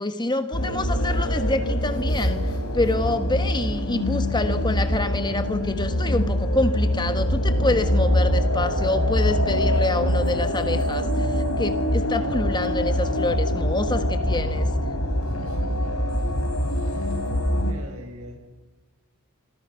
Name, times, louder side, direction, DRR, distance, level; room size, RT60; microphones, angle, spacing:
voice 1, 0.0-2.4 2.7-14.7, left 2 dB, 20° left, 9 dB, 1.4 m, -27 dB
sound 1, 0.5-17.7, left 1 dB, 85° left, 4.0 m, -24 dB
voice 2, 15.3-15.9 16.7-18.4, equal, 75° right, 4 dB, 7.1 m, -44 dB
28.0 x 26.5 x 5.8 m, 1.2 s
head